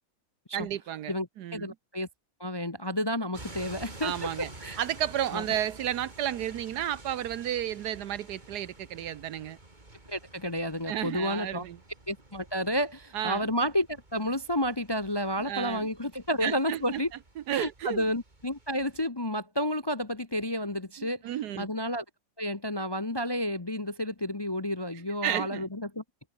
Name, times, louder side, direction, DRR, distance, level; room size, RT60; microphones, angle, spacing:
voice 1, 0.5-1.7 4.0-4.5 4.8-9.6 10.9-11.8 13.1-13.5 15.4-15.9 16.4-17.0 17.4-18.0 21.0-21.7 25.2-25.7, right 11 dB, 70° right, 1.3 m, -32 dB
voice 2, 1.5-2.1 2.4-4.3 4.6-4.8 5.3-5.4 10.1-11.6 12.1-17.1 17.5-21.2 21.6-22.0 22.4-26.0, equal, 20° left, 0.7 m, -31 dB
sound 1, 3.3-19.1, right 2 dB, 25° right, 3.3 m, -50 dB
omnidirectional pair, 1.9 m